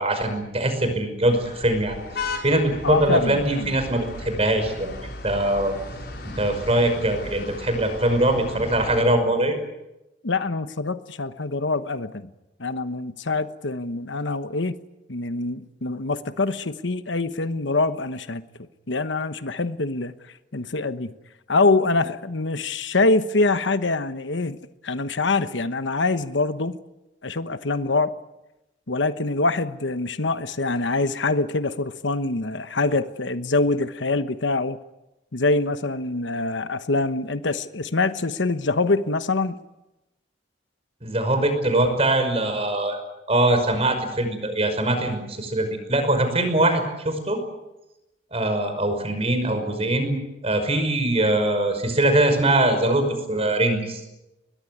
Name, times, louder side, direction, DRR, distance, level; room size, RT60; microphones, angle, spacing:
voice 1, 0.0-4.9 5.2-5.7 6.2-9.6 41.0-43.0 43.3-47.4 48.3-50.2 50.4-54.0, right 1 dB, 35° right, 7 dB, 5.6 m, -22 dB
sound 1, 1.2-9.0, left 2 dB, 60° left, 5.3 m, -36 dB
voice 2, 2.8-3.8 10.2-12.3 12.6-14.8 15.1-18.4 18.9-20.2 20.5-21.1 21.5-24.6 24.8-26.8 27.2-28.1 28.9-34.8 35.3-39.6, left 3 dB, 80° left, 12 dB, 1.1 m, -24 dB
23.0 x 21.0 x 9.5 m, 0.97 s
head